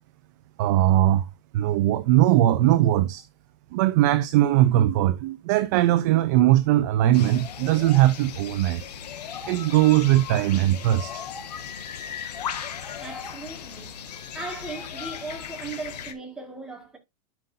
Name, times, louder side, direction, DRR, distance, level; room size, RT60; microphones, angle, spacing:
voice 1, 0.6-3.2 3.7-8.8 9.5-11.2, right 14 dB, 30° right, 0.4 m, -20 dB
sound 1, 7.1-16.1, left 8 dB, 80° left, 2.0 m, -37 dB
voice 2, 13.0-14.0 14.3-17.0, right 3 dB, 5° right, 1.7 m, -37 dB
11.5 x 5.3 x 2.5 m
supercardioid pair, 170°, 21 cm